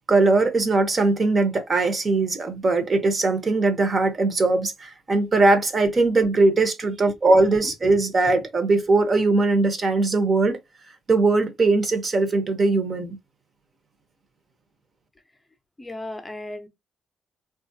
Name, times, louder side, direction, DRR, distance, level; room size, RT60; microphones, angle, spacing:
voice 1, 0.1-10.6 11.1-13.2, right 3 dB, 40° right, 0.9 m, -20 dB
voice 2, 15.8-16.7, left 1 dB, 15° left, 0.7 m, -34 dB
3.6 x 2.4 x 2.7 m
cardioid pair, 90°, 0 cm